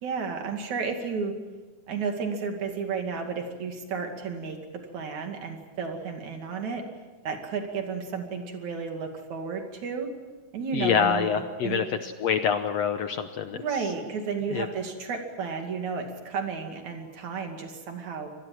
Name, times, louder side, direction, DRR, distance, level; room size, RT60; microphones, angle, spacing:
voice 1, 0.0-1.4 1.9-4.6 4.9-6.9 7.2-10.1 10.5-11.9 13.5-18.3, right 5 dB, 60° right, 4 dB, 3.7 m, -32 dB
voice 2, 10.7-13.6 14.5-14.7, left 7 dB, 70° left, 8 dB, 1.8 m, -26 dB
26.0 x 19.5 x 7.6 m, 1.3 s
omnidirectional pair, 3.8 m